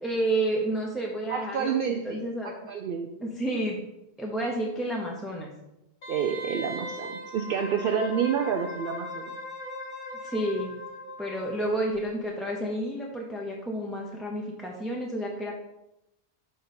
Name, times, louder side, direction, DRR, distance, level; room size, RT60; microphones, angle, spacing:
voice 1, 0.0-2.5 3.2-3.8 4.2-5.5 10.2-10.8 11.2-15.6, right 1 dB, ahead, -2 dB, 0.8 m, -30 dB
voice 2, 1.3-2.2 2.4-3.1 6.1-9.4, right 7 dB, 60° right, 5 dB, 0.7 m, -29 dB
Wind instrument woodwind instrument, 6.0-11.6 11.9-12.0, left 1 dB, 85° left, 1.9 m, -39 dB
6.5 x 5.2 x 4.3 m, 0.89 s
omnidirectional pair, 1.1 m